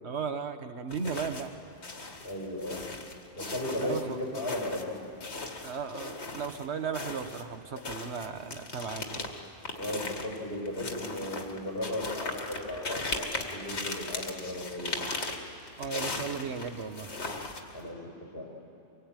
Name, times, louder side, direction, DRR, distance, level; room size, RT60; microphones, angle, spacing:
voice 1, 0.0-1.5 3.8-4.5 5.6-9.3 15.8-17.1, right 6 dB, 85° right, 8 dB, 1.4 m, -36 dB
sound 1, 0.9-1.6 1.8-6.6 6.9-17.9, left 3 dB, 85° left, 2.1 m, -38 dB
voice 2, 2.2-2.9 3.4-5.0 9.7-15.1 17.7-18.6, left 1 dB, 60° left, -1 dB, 5.5 m, -36 dB
24.0 x 22.5 x 9.0 m, 2.8 s
omnidirectional pair, 1.1 m